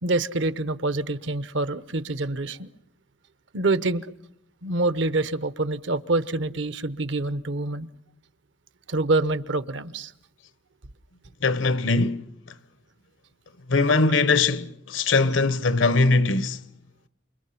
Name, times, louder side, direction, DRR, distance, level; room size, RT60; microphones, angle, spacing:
voice 1, 0.0-2.7 3.5-4.1 4.6-7.9 8.9-10.1, right 2 dB, 75° right, 0.9 m, -26 dB
voice 2, 11.4-12.2 13.7-16.6, left 3 dB, 85° left, 1.0 m, -21 dB
29.0 x 25.0 x 5.8 m
head